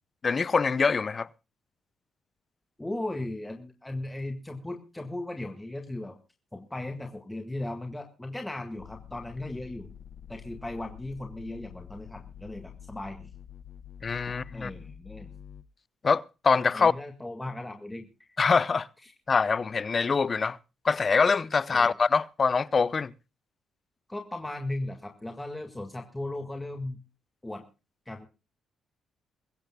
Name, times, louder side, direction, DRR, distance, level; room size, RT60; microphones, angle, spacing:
voice 1, 0.2-1.3 14.0-14.7 16.0-16.9 18.4-18.9 19.3-20.6 20.8-23.1, left 5 dB, 35° left, 0.7 m, -24 dB
voice 2, 2.8-6.2 6.5-9.9 10.3-13.3 14.5-15.3 16.7-18.4 19.0-19.1 21.7-22.0 24.1-27.0 27.4-27.6 28.1-28.3, left 1 dB, 10° left, 1.8 m, -37 dB
sound 1, 8.8-15.6, left 8 dB, 65° left, 0.8 m, -47 dB
23.0 x 15.0 x 2.3 m
cardioid pair, 90°, 0 cm